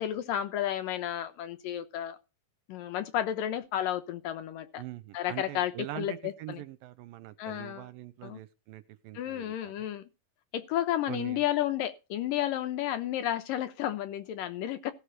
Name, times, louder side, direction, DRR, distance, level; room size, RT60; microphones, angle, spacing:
voice 1, 0.0-2.2 2.7-4.8 5.1-6.6 7.4-7.9 8.2-8.4 9.1-10.1 10.5-14.9, left 11 dB, 75° left, 2.3 m, -32 dB
voice 2, 4.8-9.9 11.1-11.4, right 15 dB, 75° right, 2.3 m, -43 dB
16.0 x 6.7 x 6.4 m
omnidirectional pair, 4.5 m